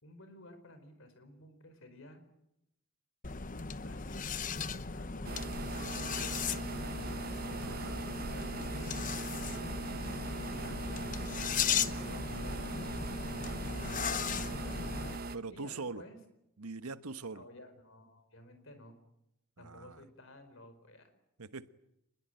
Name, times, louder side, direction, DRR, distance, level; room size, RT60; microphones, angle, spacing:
voice 1, 0.0-2.2 3.8-4.3 4.9-5.3 5.9-7.0 7.3-9.1 10.3-11.0 11.8-12.9 14.0-15.0 15.5-16.2 17.3-19.0 19.6-21.1, left 1 dB, 60° left, 9 dB, 4.7 m, -54 dB
sound 1, 3.2-15.2, left 6 dB, 35° left, 0.9 m, -37 dB
sound 2, 5.2-15.4, right 3 dB, 40° right, 0.9 m, -40 dB
voice 2, 7.6-8.0 15.3-16.0 16.6-17.4 19.6-20.0 21.4-21.7, right 4 dB, 85° right, 12 dB, 1.2 m, -42 dB
25.0 x 21.0 x 9.2 m, 0.84 s
head